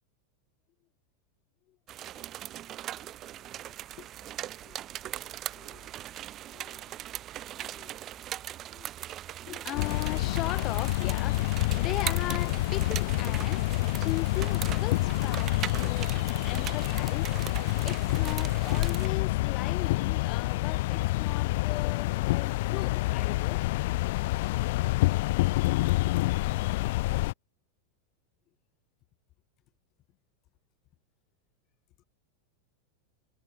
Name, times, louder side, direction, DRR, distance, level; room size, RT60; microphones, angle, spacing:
sound 1, 1.9-19.1, right 12 dB, 30° right, 6.0 m, -40 dB
voice 1, 3.4-4.9 5.5-5.9 6.5-6.9 7.5-8.0 8.7-8.9 9.5-13.6 14.0-16.1 16.4-17.3 17.8-23.7, left 16 dB, 35° left, 4.9 m, -39 dB
sound 2, 9.7-27.3, left 20 dB, 50° left, 0.5 m, -27 dB
figure-of-eight pair, 90°, 0 cm